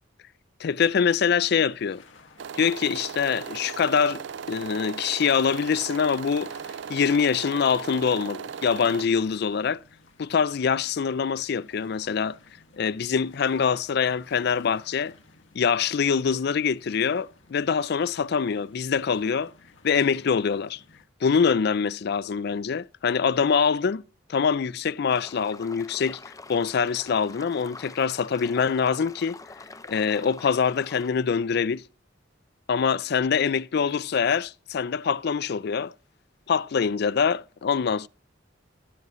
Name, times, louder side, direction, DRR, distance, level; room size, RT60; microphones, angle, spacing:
voice 1, 0.6-2.0 2.5-6.5 6.9-9.8 10.2-12.4 12.8-15.1 15.5-19.5 19.8-20.8 21.2-24.0 24.3-26.2 26.5-29.4 29.9-31.8 32.7-35.9 36.5-38.1, left 6 dB, 55° left, 0.4 m, -24 dB
sound 1, 1.4-21.0, left 3 dB, 80° left, 1.9 m, -55 dB
sound 2, 2.4-9.1, right 7 dB, 65° right, 0.4 m, -37 dB
sound 3, 25.1-31.1, left 3 dB, 15° left, 0.7 m, -45 dB
17.0 x 8.1 x 3.1 m
head